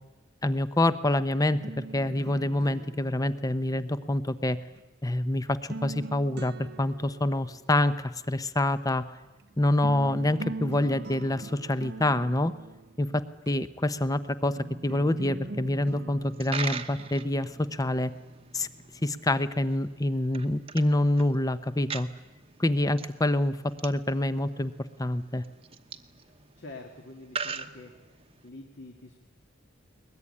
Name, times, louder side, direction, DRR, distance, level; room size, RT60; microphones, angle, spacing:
voice 1, 0.4-4.6 5.0-9.0 9.6-12.5 13.0-14.6 14.8-18.1 18.5-18.7 19.0-22.1 22.6-24.7 25.0-25.4, left 1 dB, 15° left, 13 dB, 0.8 m, -26 dB
sound 1, 1.5-4.8 5.4-7.6 9.4-9.5 9.8-13.5 14.6-19.6, right 2 dB, 55° right, 0.7 m, -43 dB
Coin (dropping), 16.2-28.5, right 5 dB, 25° right, 1.0 m, -42 dB
voice 2, 26.3-27.9 28.4-29.2, left 2 dB, 55° left, 3 dB, 2.1 m, -46 dB
21.5 x 21.0 x 9.9 m, 1.1 s
head